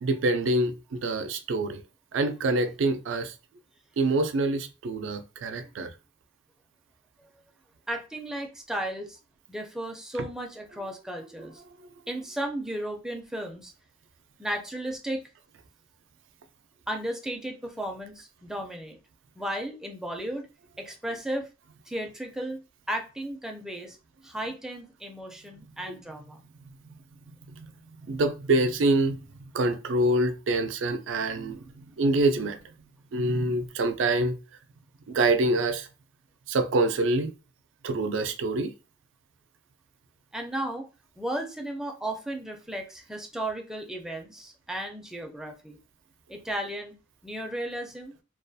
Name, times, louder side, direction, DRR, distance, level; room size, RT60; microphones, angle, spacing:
voice 1, 0.0-1.8 2.1-3.3 4.0-5.9 27.6-27.7 28.1-29.2 29.5-32.6 33.1-34.4 35.1-35.9 36.5-37.3 37.8-38.7, right 2 dB, 75° right, 0.4 m, -26 dB
voice 2, 7.9-9.2 9.5-11.6 12.1-13.7 14.4-15.2 16.9-19.0 19.4-20.5 20.8-21.5 21.9-22.6 22.9-24.0 24.2-26.4 40.3-40.8 41.2-45.8 46.3-47.0 47.2-48.1, right 1 dB, 5° right, 0.4 m, -34 dB
2.3 x 2.3 x 2.6 m
head